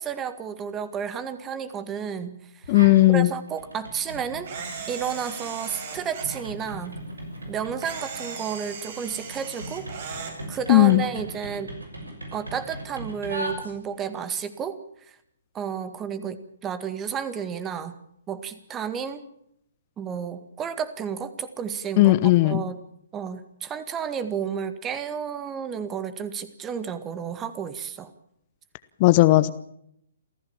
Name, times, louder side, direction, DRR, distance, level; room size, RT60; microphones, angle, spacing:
voice 1, 0.0-2.8 3.1-4.5 4.9-7.0 7.5-11.7 12.3-14.8 15.5-18.0 18.3-19.2 20.0-22.1 22.4-22.8 23.1-28.1, right 7 dB, 15° right, 12 dB, 1.9 m, -32 dB
sound 1, 2.6-3.1 3.5-14.1, right 1 dB, 85° right, 6.5 m, -39 dB
voice 2, 2.7-3.3 10.7-11.0 22.0-22.6 29.0-29.5, left 18 dB, 35° left, 13 dB, 1.0 m, -16 dB
Camera, 4.4-6.4 7.8-10.3, right 6 dB, 50° right, 6.1 m, -37 dB
28.0 x 15.0 x 7.3 m, 0.74 s
figure-of-eight pair, 130°, 0 cm